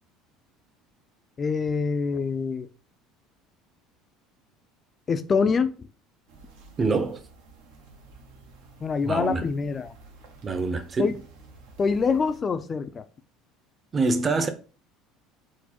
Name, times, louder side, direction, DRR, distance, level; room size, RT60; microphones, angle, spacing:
voice 1, 1.4-2.7 5.1-5.8 8.8-9.9 11.0-11.2 11.8-13.1, left 5 dB, 30° left, 0.4 m, -25 dB
sound 1, 6.3-12.4, right 3 dB, 80° right, 0.9 m, -51 dB
voice 2, 6.8-7.2 9.0-9.4 10.4-11.1 13.9-14.5, right 3 dB, 30° right, 0.7 m, -25 dB
4.5 x 2.1 x 4.2 m
supercardioid pair, 90°, 0 cm